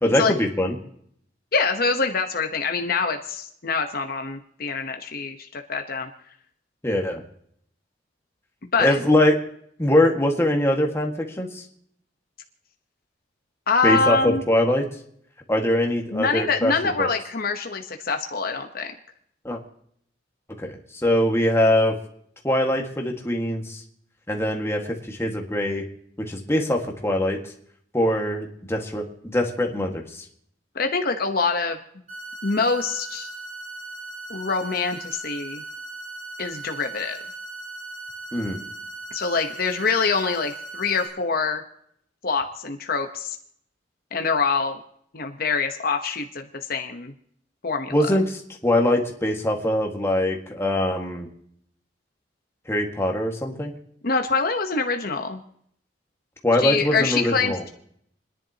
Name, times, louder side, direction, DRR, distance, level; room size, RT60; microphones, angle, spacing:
voice 1, 0.0-0.7 6.8-7.2 8.8-9.4 9.8-11.6 13.8-14.9 15.5-16.7 17.0-17.1 19.4-19.6 20.6-20.8 21.0-21.9 22.4-23.8 24.3-25.8 26.2-27.4 27.9-30.2 38.3-38.6 47.9-51.3 52.7-53.7 56.4-57.6, left 1 dB, 15° left, 1 dB, 1.7 m, -22 dB
voice 2, 1.5-6.1 8.7-9.0 13.7-14.4 16.1-18.9 30.7-31.8 32.4-33.3 34.3-35.6 36.4-37.2 39.1-41.6 42.2-43.4 44.1-44.8 45.1-47.1 47.6-47.9 54.0-55.4 56.5-57.7, left 4 dB, 55° left, 5 dB, 1.0 m, -25 dB
sound 1, 32.1-41.1, right 2 dB, 40° right, 7.6 m, -38 dB
29.5 x 10.5 x 2.9 m, 0.69 s
head